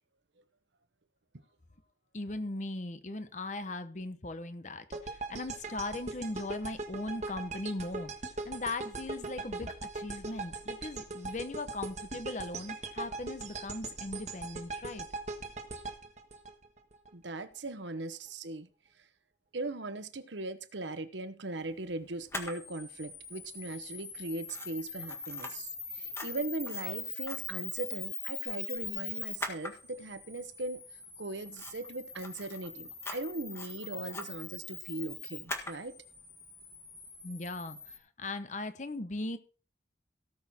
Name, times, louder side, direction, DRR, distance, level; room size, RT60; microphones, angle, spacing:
voice 1, 2.1-8.1 8.4-15.1 37.2-39.4, left 2 dB, 40° left, 1.0 m, -39 dB
sound 1, 4.9-17.1, right 3 dB, 40° right, 1.5 m, -40 dB
voice 2, 17.1-18.7 19.0-19.1 19.5-30.8 31.2-36.0, right 2 dB, 85° right, 1.1 m, -39 dB
Camera, 22.3-38.0, left 3 dB, 15° left, 1.7 m, -42 dB
17.5 x 6.4 x 4.3 m
head